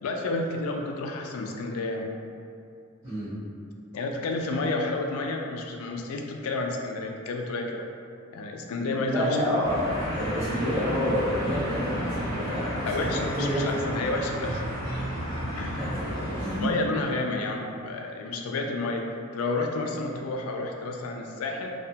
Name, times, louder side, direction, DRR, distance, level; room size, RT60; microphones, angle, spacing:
voice 1, 0.0-2.1 3.9-7.9 8.3-9.5 12.8-14.6 15.6-15.9 16.5-19.0 19.3-21.7, left 2 dB, 85° left, 2 dB, 0.3 m, -30 dB
voice 2, 3.0-3.3 9.0-9.8 10.1-13.9 15.8-16.7, equal, 20° right, -20 dB, 1.2 m, -29 dB
sound 1, 9.6-16.6, equal, 15° left, 0.8 m, -32 dB
2.6 x 2.1 x 2.7 m, 2.4 s
head